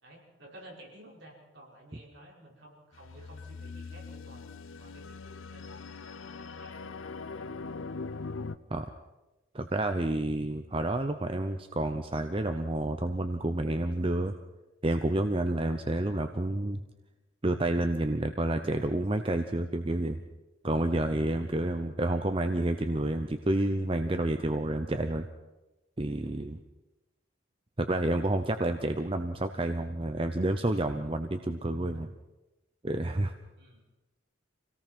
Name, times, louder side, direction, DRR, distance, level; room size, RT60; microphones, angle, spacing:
voice 1, 0.0-4.5 4.8-7.5 33.6-33.8, right 1 dB, 60° right, -3 dB, 5.9 m, -53 dB
sound 1, 2.9-8.6, left 4 dB, 80° left, 0.7 m, -41 dB
voice 2, 9.5-14.3 14.8-16.8 17.4-20.2 20.6-25.3 26.0-26.6 27.8-32.1 32.8-33.3, right 1 dB, 25° right, 7 dB, 0.7 m, -29 dB
25.5 x 17.5 x 6.1 m, 1.0 s
head